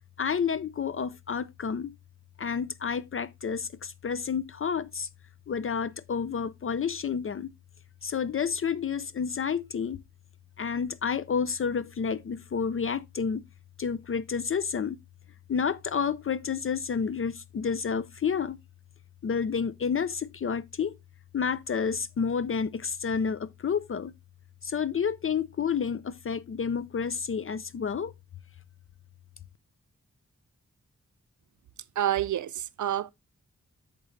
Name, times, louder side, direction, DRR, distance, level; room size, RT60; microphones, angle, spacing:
voice 1, 0.2-1.9 2.4-5.1 5.5-7.5 8.0-10.0 10.6-13.4 13.8-15.0 15.5-18.6 19.2-21.0 21.3-24.1 24.6-28.1, left 6 dB, 45° left, 0.5 m, -30 dB
voice 2, 32.0-33.1, right 11 dB, 80° right, 0.5 m, -28 dB
9.0 x 6.6 x 3.1 m
wide cardioid pair, 175°, 29 cm